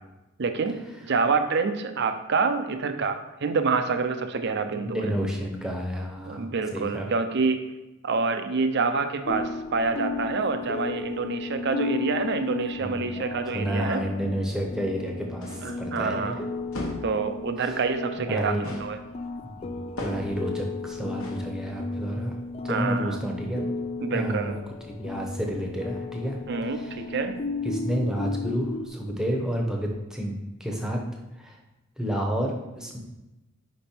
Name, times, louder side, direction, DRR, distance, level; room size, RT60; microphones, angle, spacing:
voice 1, 0.4-5.1 6.3-7.6 8.0-14.0 15.6-16.5 17.0-19.0 22.7-23.2 24.0-24.6 26.5-27.4, right 4 dB, 50° right, 8 dB, 0.5 m, -27 dB
voice 2, 4.7-7.1 12.8-13.2 13.5-16.4 17.6-17.8 18.2-18.7 19.4-19.7 20.0-22.4 22.6-23.7 24.1-26.4 26.7-27.1 27.6-30.3 30.6-31.0 31.4-31.6 32.0-33.0, equal, 5° right, 0 dB, 0.8 m, -30 dB
sound 1, 9.3-28.9, left 3 dB, 30° left, 0.4 m, -35 dB
sound 2, 15.4-15.8 16.7-17.2 18.6-19.0 20.0-20.4 21.2-21.5, left 1 dB, 70° left, 1.1 m, -36 dB
5.2 x 5.2 x 4.4 m, 1.0 s
head